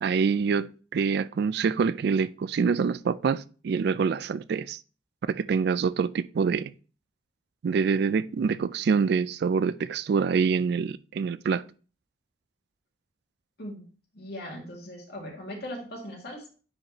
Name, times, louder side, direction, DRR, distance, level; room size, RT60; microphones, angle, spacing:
voice 1, 0.0-4.8 5.3-6.7 7.6-11.6, right 5 dB, 60° right, 0.3 m, -26 dB
voice 2, 14.1-16.5, left 1 dB, 60° left, 2.2 m, -39 dB
9.7 x 4.1 x 2.9 m
head